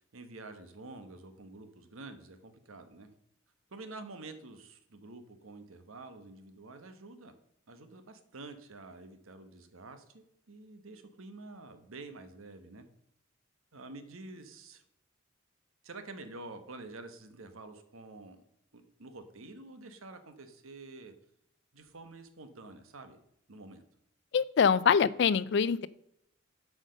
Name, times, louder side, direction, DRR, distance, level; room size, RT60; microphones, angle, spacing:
voice 1, 0.0-3.1 3.7-7.3 7.7-12.8 13.7-14.8 15.8-18.4 18.7-21.1 21.7-23.2 23.5-23.8, right 2 dB, 90° right, 9 dB, 1.1 m, -48 dB
voice 2, 24.3-25.9, left 6 dB, 55° left, 19 dB, 0.3 m, -24 dB
7.7 x 5.0 x 6.3 m, 0.76 s
head